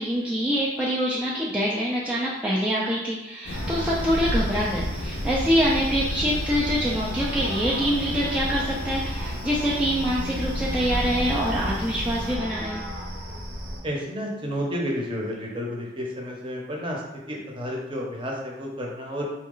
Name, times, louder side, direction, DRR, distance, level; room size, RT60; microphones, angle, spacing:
voice 1, 0.0-12.8, equal, 5° right, -6 dB, 0.5 m, -25 dB
sound 1, 3.5-12.4, equal, 65° left, 0.6 m, -32 dB
sound 2, 3.5-13.8, equal, 60° right, 0.9 m, -34 dB
voice 2, 13.8-19.3, equal, 30° right, -1 dB, 0.9 m, -31 dB
4.3 x 3.1 x 3.8 m, 1.0 s
head